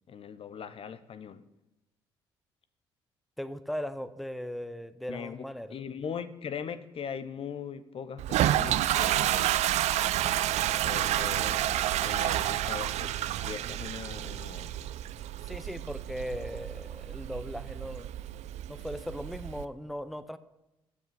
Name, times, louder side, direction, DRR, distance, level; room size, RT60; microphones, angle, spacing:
voice 1, 0.1-1.4 5.1-9.6 10.8-11.7 12.0-13.1 13.4-14.7, left 7 dB, 45° left, 14 dB, 0.9 m, -40 dB
voice 2, 3.4-5.8 15.4-18.1 18.7-20.4, equal, ahead, 14 dB, 0.8 m, -38 dB
Toilet flush, 8.2-19.6, right 13 dB, 60° right, 0.6 m, -30 dB
14.5 x 8.2 x 7.0 m, 0.94 s
hypercardioid pair, 50°, 13 cm